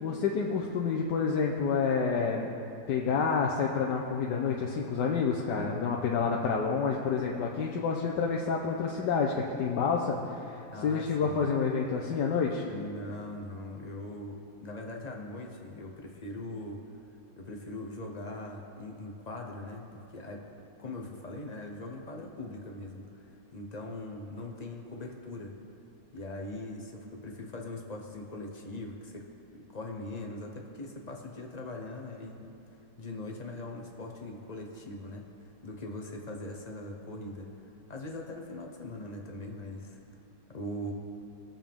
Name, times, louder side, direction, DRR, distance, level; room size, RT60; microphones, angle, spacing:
voice 1, 0.0-2.5 2.9-12.6, left 5 dB, 70° left, -1 dB, 1.3 m, -29 dB
voice 2, 10.7-11.5 12.7-16.8 17.4-20.4 20.8-25.5 26.1-29.2 29.5-32.5 33.0-37.5 37.9-40.0 40.5-40.9, left 1 dB, 35° left, 0 dB, 0.6 m, -41 dB
20.0 x 7.4 x 3.6 m, 2.6 s
omnidirectional pair, 2.0 m